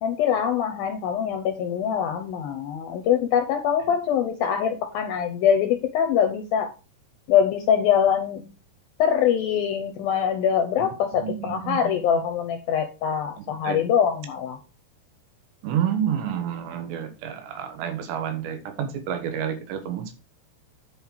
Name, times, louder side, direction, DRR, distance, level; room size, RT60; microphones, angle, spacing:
voice 1, 0.0-6.7 7.3-8.5 9.0-14.6, left 8 dB, 75° left, 6 dB, 2.3 m, -23 dB
voice 2, 11.1-12.1 13.4-13.8 15.6-20.1, right 9 dB, 80° right, 7 dB, 3.6 m, -29 dB
9.9 x 5.5 x 4.7 m, 0.31 s
omnidirectional pair, 4.9 m